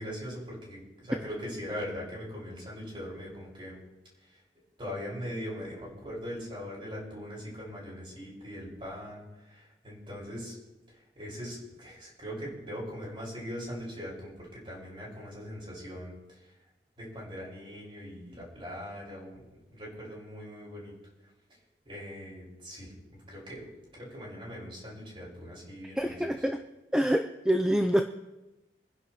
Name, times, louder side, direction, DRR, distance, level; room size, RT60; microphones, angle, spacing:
voice 1, 0.0-3.8 4.3-4.4 4.8-10.6 10.9-16.5 17.0-19.4 19.7-20.9 21.8-22.9 23.3-23.6 23.9-26.2, equal, 30° right, -4 dB, 6.1 m, -41 dB
voice 2, 25.9-26.6 26.9-28.0, equal, 5° right, 5 dB, 0.5 m, -26 dB
27.5 x 10.5 x 3.2 m, 1.0 s
head